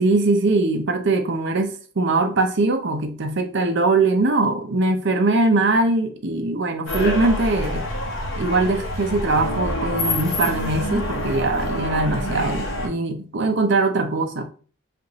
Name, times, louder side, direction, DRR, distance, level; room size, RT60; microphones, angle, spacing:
voice 1, 0.0-7.9 8.4-14.5, right 2 dB, 55° right, 0.6 m, -21 dB
sound 1, 6.9-12.9, left 1 dB, 65° left, 1.1 m, -27 dB
5.1 x 2.6 x 3.0 m
head